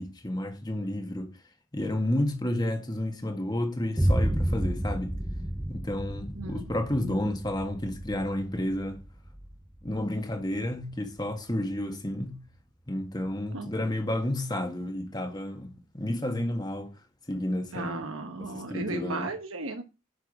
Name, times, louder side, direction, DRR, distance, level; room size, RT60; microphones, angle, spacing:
voice 1, 0.0-1.3 1.7-5.1 5.7-9.0 9.8-12.4 12.9-16.9 17.3-18.0 18.4-19.3, left 1 dB, 20° left, 1.7 m, -31 dB
Boom, 4.0-11.8, right 1 dB, 10° right, 0.7 m, -32 dB
voice 2, 6.4-6.7 7.1-7.2 13.5-13.7 17.7-19.8, right 2 dB, 85° right, 1.2 m, -35 dB
10.5 x 6.1 x 6.1 m
head